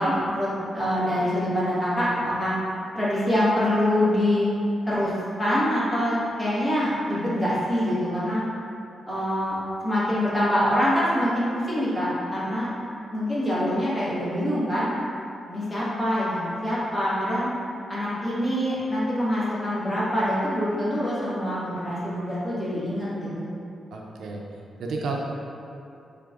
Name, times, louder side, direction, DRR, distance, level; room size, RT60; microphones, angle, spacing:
voice 1, 0.0-2.5 2.9-4.5 4.9-5.1 5.4-8.4 9.1-9.6 9.8-12.7 13.1-14.9 15.5-17.5 17.9-23.4, equal, 15° left, -10 dB, 1.5 m, -25 dB
voice 2, 23.9-24.4 24.8-25.2, right 4 dB, 80° right, -1 dB, 0.5 m, -31 dB
6.6 x 3.3 x 2.4 m, 2.6 s
wide cardioid pair, 125°, 0 cm